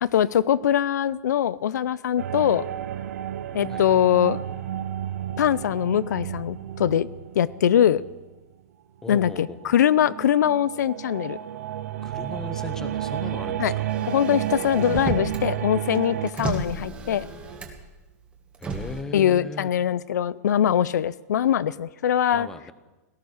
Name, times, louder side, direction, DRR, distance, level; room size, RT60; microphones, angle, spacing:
voice 1, 0.0-2.7 3.5-4.4 5.4-7.1 7.3-8.0 9.1-11.4 13.6-13.7 14.1-17.3 19.1-22.5, left 10 dB, 80° left, 19 dB, 0.6 m, -22 dB
sound 1, 2.2-8.4 9.2-16.3, right 11 dB, 60° right, 0.7 m, -32 dB
voice 2, 3.7-4.0 9.0-9.8 12.0-13.9 18.6-19.7 22.3-22.7, left 3 dB, 5° left, 11 dB, 0.8 m, -38 dB
Motor vehicle (road), 13.9-15.5 15.8-17.9 18.5-19.0, right 4 dB, 10° right, 1.5 m, -32 dB
17.5 x 12.0 x 6.6 m, 1.1 s
supercardioid pair, 165°, 9 cm